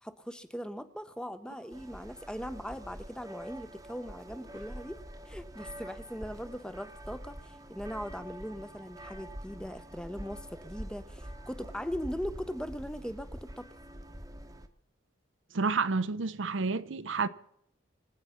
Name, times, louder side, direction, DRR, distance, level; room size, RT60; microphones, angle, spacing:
voice 1, 0.0-5.0 5.3-13.7, equal, 5° left, 0.7 m, -40 dB
sound 1, 1.7-14.7, equal, 15° right, 1.0 m, -46 dB
voice 2, 15.5-17.3, right 4 dB, 70° right, 0.7 m, -29 dB
25.5 x 8.6 x 5.6 m
head